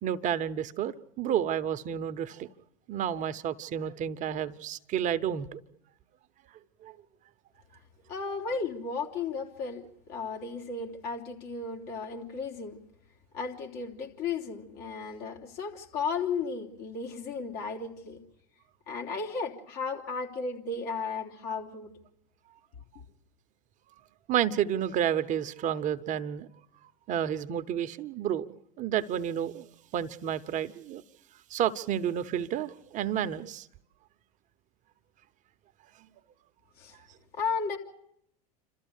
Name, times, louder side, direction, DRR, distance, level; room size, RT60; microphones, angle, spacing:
voice 1, 0.0-2.5 2.9-5.6 6.8-6.9 24.3-26.5 27.1-28.4 28.8-29.7 29.9-31.0 31.5-33.7, right 9 dB, 40° right, 0.9 m, -30 dB
voice 2, 8.1-12.8 13.3-18.2 18.9-21.9 36.8-37.0 37.3-37.8, left 4 dB, 60° left, 3.4 m, -34 dB
27.5 x 13.5 x 8.3 m
hypercardioid pair, 95°, 19 cm